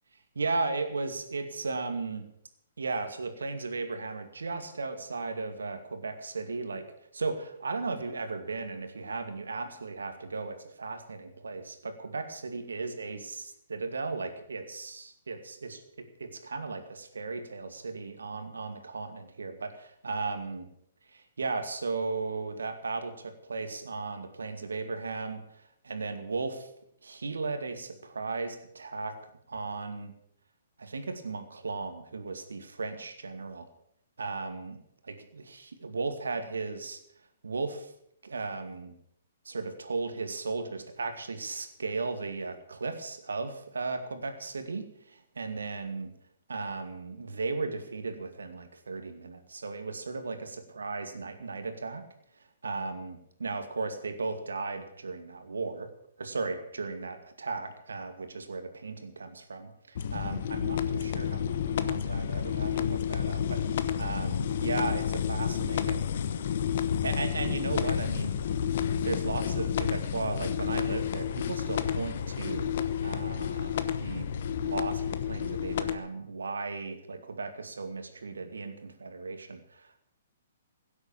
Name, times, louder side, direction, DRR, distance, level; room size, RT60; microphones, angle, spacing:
voice 1, 0.4-2.3 2.8-6.9 7.1-15.8 16.2-20.7 21.1-25.4 25.8-26.7 27.0-29.1 29.5-30.1 30.8-33.7 34.2-34.8 35.0-37.0 37.4-37.9 38.2-38.9 39.5-46.1 46.5-52.0 52.6-55.9 56.2-66.1 67.0-68.4 69.0-72.7 73.0-74.3 74.6-80.0, right 3 dB, 80° right, 7 dB, 2.3 m, -36 dB
sound 1, 60.0-76.0, left 8 dB, 60° left, 1.1 m, -30 dB
16.5 x 8.1 x 8.6 m, 0.70 s
hypercardioid pair, 125°, 0 cm